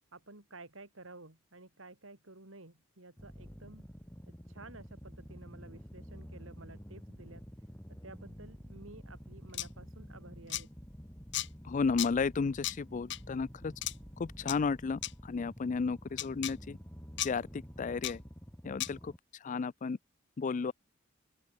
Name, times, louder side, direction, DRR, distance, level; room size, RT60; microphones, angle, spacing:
voice 1, 0.1-3.8 4.3-7.5 7.9-10.7, right 2 dB, 80° right, 3.9 m, -53 dB
sound 1, 3.2-19.2, equal, 10° left, 2.7 m, -49 dB
sound 2, 9.5-9.7 10.5-10.6 11.3-11.5 12.0-12.1 12.6-12.8 13.1-13.2 13.8-13.9 14.5-14.6 15.0-15.1 16.2-16.5 17.2-17.3 18.0-18.1 18.8-18.9, left 15 dB, 60° left, 0.7 m, -34 dB
voice 2, 11.6-13.7 14.2-16.8 17.2-18.2 18.6-19.1 19.4-20.0 20.4-20.7, left 4 dB, 40° left, 0.4 m, -33 dB
open air
head